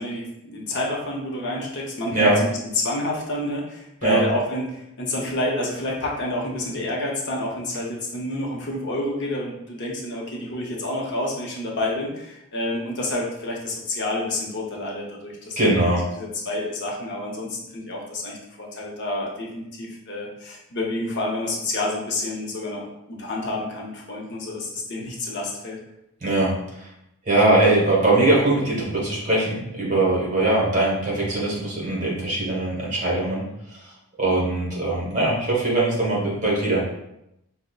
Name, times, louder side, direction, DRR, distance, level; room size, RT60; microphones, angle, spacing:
voice 1, 0.0-25.8, left 1 dB, 50° left, -2 dB, 0.6 m, -29 dB
voice 2, 15.6-16.0 26.2-26.5 26.8-26.9 27.3-33.4 33.7-33.8 34.2-36.8, right 2 dB, 35° right, -5 dB, 1.1 m, -21 dB
5.0 x 2.0 x 2.3 m, 0.84 s
head